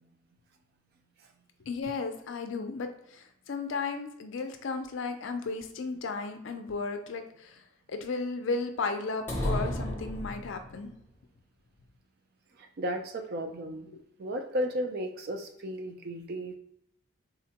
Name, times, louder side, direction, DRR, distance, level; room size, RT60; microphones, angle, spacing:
voice 1, 1.7-7.6 7.9-10.9 13.9-14.0, left 4 dB, 60° left, 7 dB, 0.4 m, -34 dB
sound 1, 9.3-10.9, left 1 dB, 10° left, 0.6 m, -32 dB
voice 2, 12.6-13.9 14.2-16.6, equal, 50° right, 5 dB, 0.4 m, -34 dB
3.7 x 2.1 x 2.8 m, 0.74 s
head